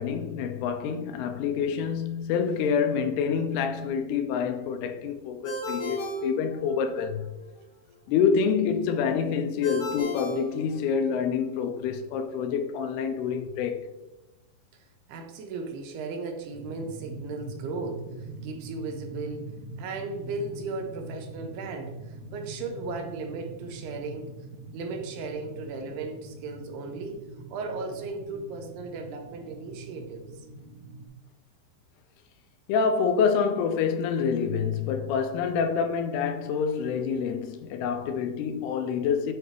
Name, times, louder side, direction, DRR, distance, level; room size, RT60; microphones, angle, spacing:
voice 1, 0.0-7.3 8.1-13.9 32.7-39.3, left 6 dB, 90° left, 2.6 m, -27 dB
Ringtone, 5.4-7.1 9.6-11.3, right 1 dB, 50° left, 3.2 m, -35 dB
voice 2, 14.7-24.3 24.7-27.2 27.5-30.5, right 3 dB, 80° right, 2.8 m, -36 dB
sound 1, 16.5-31.1, right 1 dB, 55° right, 1.6 m, -43 dB
8.1 x 4.4 x 3.3 m
omnidirectional pair, 4.6 m